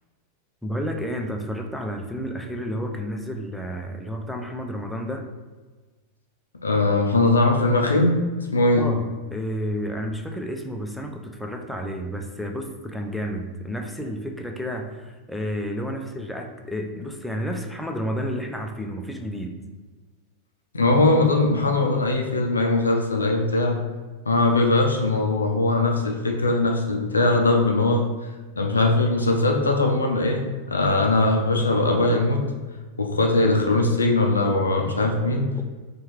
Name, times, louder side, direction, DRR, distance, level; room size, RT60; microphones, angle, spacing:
voice 1, 0.6-5.2 8.7-19.6 35.6-35.7, equal, ahead, 3 dB, 0.3 m, -31 dB
voice 2, 6.6-8.9 20.7-23.8 24.3-28.1 28.6-30.4 30.7-32.4 33.0-35.5, left 2 dB, 75° left, 2 dB, 0.4 m, -20 dB
4.3 x 2.3 x 3.0 m, 1.3 s
figure-of-eight pair, 90°, 0 cm